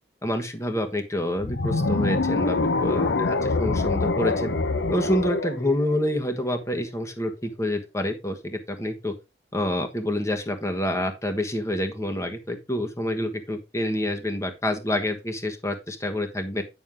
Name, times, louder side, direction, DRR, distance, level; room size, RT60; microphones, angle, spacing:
voice 1, 0.2-3.3 3.6-4.5 4.9-9.1 9.5-16.6, left 1 dB, 15° left, 6 dB, 1.3 m, -27 dB
sound 1, 1.4-6.6, left 3 dB, 90° left, 0.7 m, -25 dB
9.3 x 6.3 x 3.6 m, 0.25 s
head